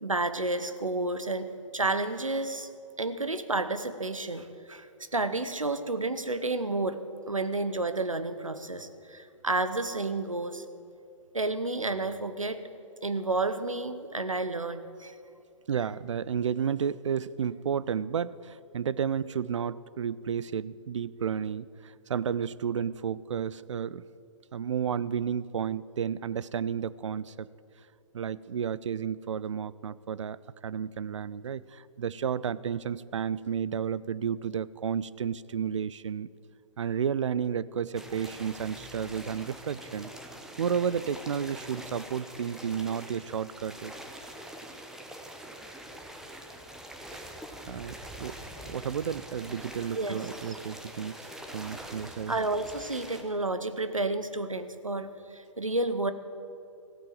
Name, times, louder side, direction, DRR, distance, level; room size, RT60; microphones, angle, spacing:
voice 1, 0.0-2.7 3.0-7.0 7.3-10.6 11.3-12.6 13.0-15.1 49.9-50.2 50.5-50.6 52.3-56.1, right 2 dB, 90° right, 11 dB, 0.9 m, -31 dB
voice 2, 15.7-24.0 24.5-27.5 28.1-30.4 30.6-36.3 36.8-40.1 40.6-43.9 47.1-47.2 47.7-48.4 48.7-52.4, right 7 dB, 65° right, 19 dB, 0.5 m, -32 dB
sound 1, 37.9-53.2, right 1 dB, 5° right, 1.1 m, -44 dB
15.0 x 8.8 x 7.6 m, 2.5 s
figure-of-eight pair, 120°, 17 cm